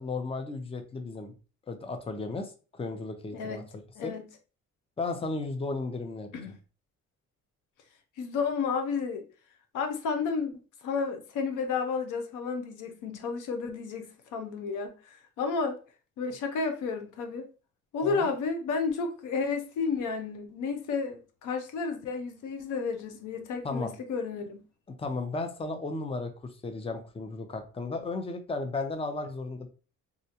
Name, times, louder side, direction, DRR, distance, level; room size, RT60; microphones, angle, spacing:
voice 1, 0.0-1.3 1.7-4.1 5.0-6.3 18.0-18.3 23.6-23.9 25.0-26.3 26.6-29.7, left 3 dB, 20° left, 0.6 m, -34 dB
voice 2, 4.0-4.3 6.3-6.6 8.2-9.2 9.7-10.5 10.8-15.8 16.2-17.5 17.9-24.6, left 5 dB, 85° left, 0.7 m, -32 dB
3.7 x 2.2 x 2.8 m
cardioid pair, 90°, 30 cm